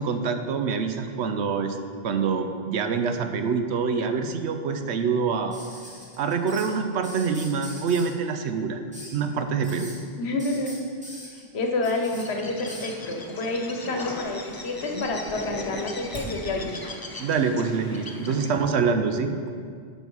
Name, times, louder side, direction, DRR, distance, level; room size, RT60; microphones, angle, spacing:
voice 1, 0.0-1.8 2.0-5.6 6.2-8.8 9.1-9.9 17.2-19.5, right 5 dB, 80° right, 7 dB, 0.9 m, -25 dB
sound 1, 5.5-6.7 7.0-8.1 8.9-9.2 9.6-10.0 10.4-12.2 12.7-13.0 14.0-14.6 14.9-16.3 17.7-17.8, equal, 5° right, 1.6 m, -42 dB
voice 2, 10.2-10.7 11.4-16.7 18.3-18.4, left 2 dB, 75° left, 3 dB, 1.1 m, -29 dB
Bird, 12.0-18.7, left 2 dB, 25° left, 0.5 m, -38 dB
10.5 x 4.1 x 5.4 m, 2.1 s
omnidirectional pair, 1.1 m